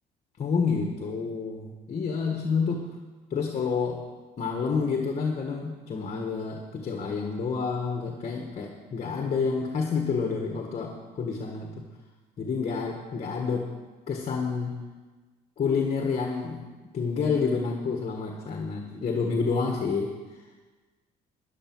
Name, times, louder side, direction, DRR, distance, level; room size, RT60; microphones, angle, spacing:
voice 1, 0.4-2.7 3.3-4.1 4.4-11.7 12.4-13.7 14.1-14.8 15.6-16.7 16.9-20.2, left 5 dB, 40° left, 3 dB, 1.6 m, -29 dB
12.0 x 10.5 x 6.1 m, 1.3 s
cardioid pair, 110°, 17 cm